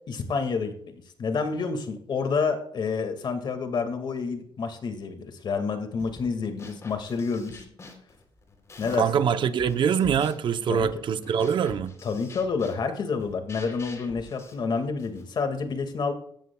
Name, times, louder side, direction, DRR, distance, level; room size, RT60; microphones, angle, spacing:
voice 1, 0.1-0.7 1.2-7.6 8.8-9.2 10.7-10.9 12.0-16.1, left 5 dB, 55° left, 2.0 m, -29 dB
sound 1, 6.0-6.3 6.6-9.2 9.6-15.3, left 2 dB, 35° left, 3.4 m, -46 dB
voice 2, 9.0-11.9, right 7 dB, 60° right, 0.8 m, -24 dB
16.5 x 13.0 x 2.3 m
cardioid pair, 130°, 9 cm